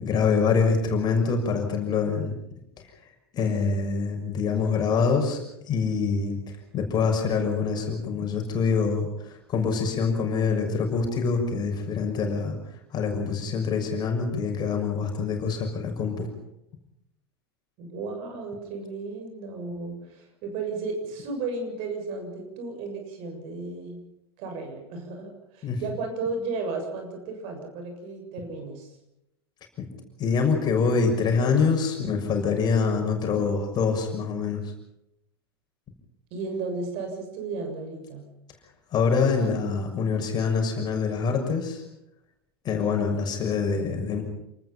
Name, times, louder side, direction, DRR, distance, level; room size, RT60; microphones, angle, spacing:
voice 1, 0.0-2.3 3.3-5.4 5.7-6.4 6.7-9.1 9.5-12.5 12.9-16.3 25.6-25.8 29.8-29.9 30.2-34.6 38.9-41.8 42.6-44.2, left 5 dB, 30° left, 3 dB, 6.6 m, -25 dB
voice 2, 17.8-24.0 24.4-28.9 36.3-38.3, right 3 dB, 50° right, 5 dB, 7.2 m, -34 dB
29.0 x 20.0 x 5.9 m, 0.85 s
figure-of-eight pair, 85°, 13 cm